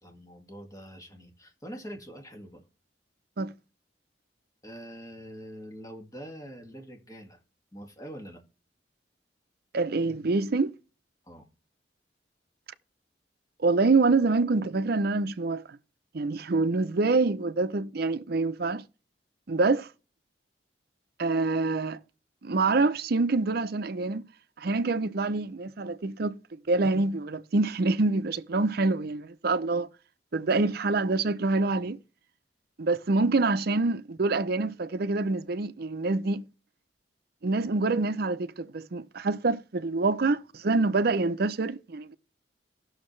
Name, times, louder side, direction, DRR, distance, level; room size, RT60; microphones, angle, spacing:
voice 1, 0.0-2.6 4.6-7.4 7.7-8.4 11.3-11.5, equal, 20° left, 1.9 m, -44 dB
voice 2, 9.7-10.7 13.6-15.6 16.1-18.8 19.5-19.9 21.2-22.0 22.4-24.3 24.6-26.4 26.7-29.9 30.3-32.0 32.8-36.4 37.4-42.2, right 3 dB, 60° right, 0.6 m, -26 dB
16.0 x 6.4 x 3.2 m
head